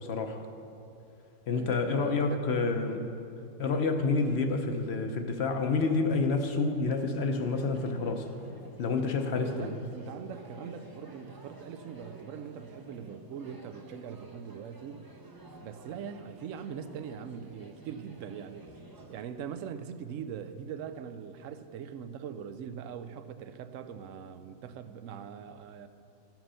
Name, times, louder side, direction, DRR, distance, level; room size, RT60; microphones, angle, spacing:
voice 1, 0.0-0.4 1.5-3.0 3.6-8.3 8.8-9.7, left 4 dB, 55° left, 6 dB, 0.9 m, -28 dB
voice 2, 1.5-2.4 9.3-15.1 15.6-18.7 19.1-25.9, right 7 dB, 70° right, 11 dB, 0.9 m, -42 dB
sound 1, 7.3-19.2, right 2 dB, 25° right, 0.5 m, -51 dB
14.0 x 6.0 x 5.6 m, 2.8 s
omnidirectional pair, 1.5 m